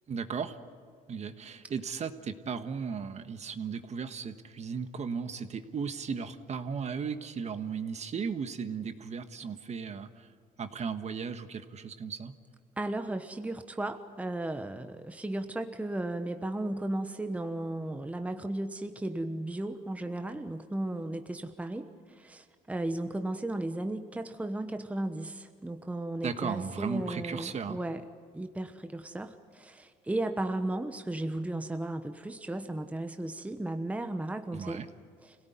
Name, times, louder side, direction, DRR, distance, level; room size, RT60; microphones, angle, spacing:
voice 1, 0.1-0.6 1.1-10.3 10.6-12.3 26.2-27.8 34.5-34.9, right 6 dB, 40° right, 9 dB, 1.4 m, -36 dB
voice 2, 12.8-28.0 28.3-34.8 35.2-35.4, right 1 dB, 10° right, 7 dB, 1.1 m, -35 dB
26.0 x 18.0 x 9.4 m, 2.1 s
cardioid pair, 110°, 17 cm